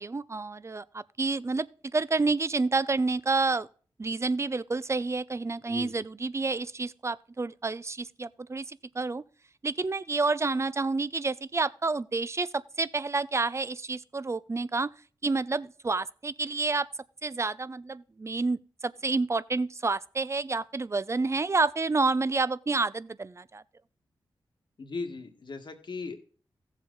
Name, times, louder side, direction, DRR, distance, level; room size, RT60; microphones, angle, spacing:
voice 1, 0.0-1.7 1.9-3.7 4.0-9.2 9.6-14.9 15.2-16.9 17.2-23.6, right 3 dB, 30° right, 0.5 m, -29 dB
voice 2, 5.7-6.1 24.8-26.2, left 4 dB, 55° left, 1.6 m, -38 dB
15.0 x 7.3 x 3.9 m
cardioid pair, 50°, 9 cm